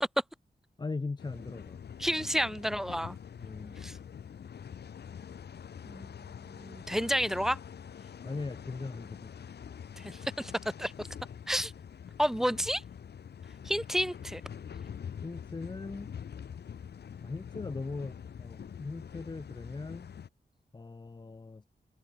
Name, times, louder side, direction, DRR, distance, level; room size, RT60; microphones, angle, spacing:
voice 1, 0.8-1.8 3.4-3.8 8.2-9.4 15.2-16.1 17.2-20.1 20.7-21.7, left 3 dB, 25° left, 0.8 m, -39 dB
sound 1, 1.2-20.3, left 8 dB, 85° left, 1.0 m, -45 dB
voice 2, 2.0-3.2 3.8-4.0 5.9-7.6 10.0-10.5 10.8-11.1 11.5-11.7 12.2-12.8 13.6-14.4, equal, 5° right, 0.9 m, -31 dB
wide cardioid pair, 150°, 17 cm